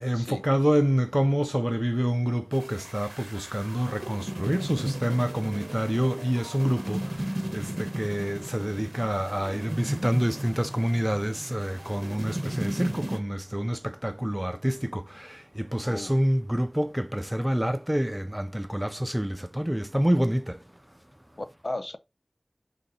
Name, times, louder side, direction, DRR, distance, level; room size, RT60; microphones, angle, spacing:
voice 1, 0.0-7.2 7.5-20.6, equal, 10° right, 0.4 m, -27 dB
sound 1, 2.5-13.2, right 1 dB, 40° right, 1.2 m, -35 dB
voice 2, 15.8-16.1 21.4-22.0, left 2 dB, 65° left, 0.5 m, -35 dB
5.1 x 3.8 x 2.7 m
wide cardioid pair, 40°, 0 cm